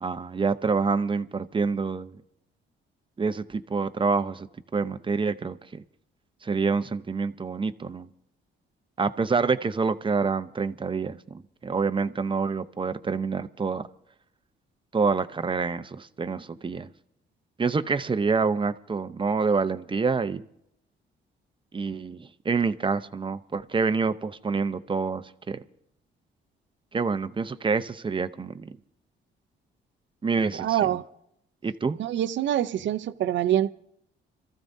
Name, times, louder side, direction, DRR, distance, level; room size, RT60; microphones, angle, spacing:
voice 1, 0.0-2.2 3.2-4.5 4.7-5.8 6.4-8.1 9.0-13.9 14.9-16.9 17.6-20.4 21.7-25.6 26.9-28.7 30.2-30.9 31.6-32.0, right 4 dB, 25° right, 11 dB, 0.8 m, -27 dB
voice 2, 30.6-31.0 32.0-33.7, right 11 dB, 70° right, 12 dB, 0.7 m, -25 dB
27.0 x 14.5 x 2.7 m, 0.77 s
cardioid pair, 90°, 20 cm